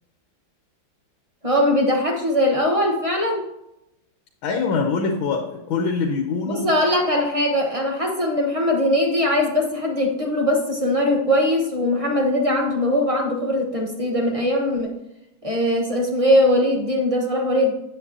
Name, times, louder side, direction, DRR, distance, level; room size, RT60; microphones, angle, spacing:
voice 1, 1.4-3.4 6.5-14.9 15.4-17.7, left 1 dB, 25° right, 1 dB, 0.8 m, -21 dB
voice 2, 4.4-6.7, left 4 dB, 85° left, 2 dB, 1.6 m, -24 dB
8.2 x 7.9 x 2.8 m, 0.88 s
omnidirectional pair, 2.1 m